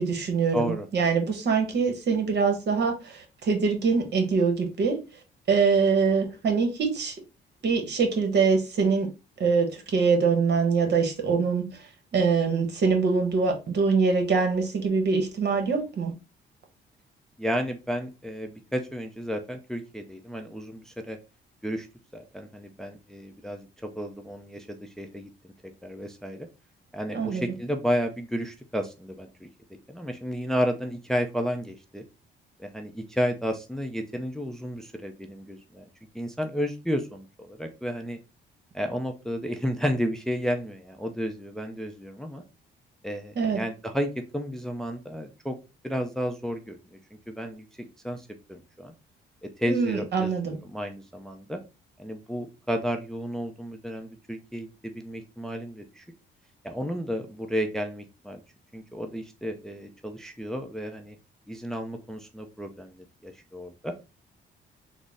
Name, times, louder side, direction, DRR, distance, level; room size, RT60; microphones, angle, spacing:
voice 1, 0.0-5.0 5.5-7.1 7.6-9.1 9.4-11.6 12.1-16.1 27.1-27.5 43.4-43.6 49.7-50.6, right 5 dB, 60° right, 1.1 m, -24 dB
voice 2, 0.5-0.9 17.4-21.2 21.6-21.9 22.1-25.5 25.8-26.5 26.9-29.5 29.9-32.0 32.6-35.9 36.1-38.2 38.7-42.4 43.0-45.6 45.8-46.8 47.3-48.9 49.6-51.6 52.0-56.0 56.6-58.4 58.7-61.2 61.5-63.9, equal, ahead, 0.5 m, -32 dB
3.8 x 2.1 x 3.5 m
cardioid pair, 90°, 20 cm